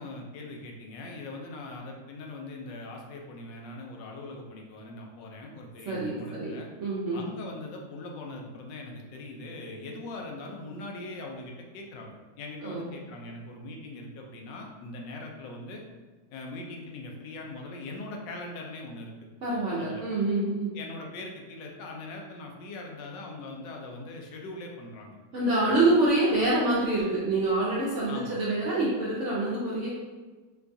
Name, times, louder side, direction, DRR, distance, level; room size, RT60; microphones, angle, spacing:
voice 1, 0.0-6.7 7.1-15.8 16.3-19.2 19.8-20.0 20.7-25.2 25.6-25.9 28.1-28.4, left 2 dB, 80° left, 1 dB, 1.3 m, -41 dB
voice 2, 5.9-7.3 12.6-12.9 19.4-20.7 25.3-29.9, right 2 dB, 65° right, -7 dB, 0.7 m, -26 dB
4.6 x 2.3 x 2.6 m, 1.3 s
omnidirectional pair, 1.9 m